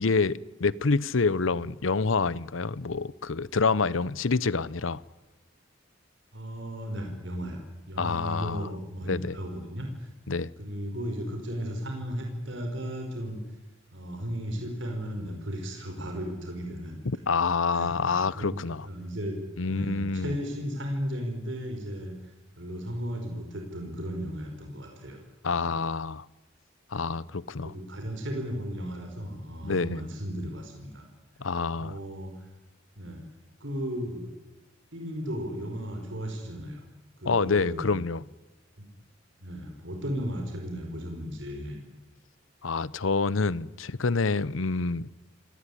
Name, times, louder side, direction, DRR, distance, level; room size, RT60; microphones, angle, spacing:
voice 1, 0.0-5.0 8.0-8.7 9.0-9.3 10.3-10.5 17.0-18.9 19.6-20.4 25.4-26.2 26.9-27.7 29.6-30.0 31.4-32.0 37.2-38.2 42.6-45.1, left 4 dB, 85° left, 0.8 m, -27 dB
voice 2, 6.3-7.6 7.9-10.1 10.6-13.4 13.9-17.0 17.7-19.4 19.7-22.1 22.6-25.2 27.6-31.1 31.8-32.5 33.0-33.2 33.6-34.4 34.9-36.8 37.2-38.0 38.8-38.9 39.4-41.8, equal, 65° right, 4.8 m, -35 dB
27.0 x 18.5 x 9.9 m
head